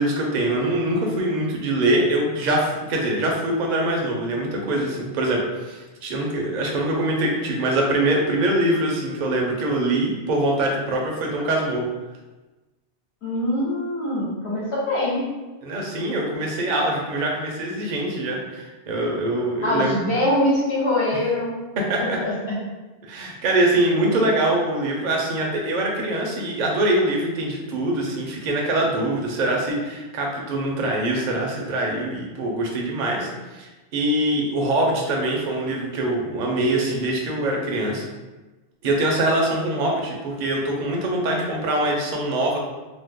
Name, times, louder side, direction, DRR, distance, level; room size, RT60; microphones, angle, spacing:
voice 1, 0.0-11.9 15.6-20.0 21.8-22.2 23.0-38.0 38.8-42.6, right 1 dB, 50° right, -1 dB, 0.6 m, -23 dB
voice 2, 13.2-15.3 19.6-21.5 22.0-22.3 24.1-24.2, left 1 dB, 70° left, -7 dB, 1.4 m, -23 dB
2.9 x 2.0 x 3.5 m, 1.2 s
omnidirectional pair, 1.2 m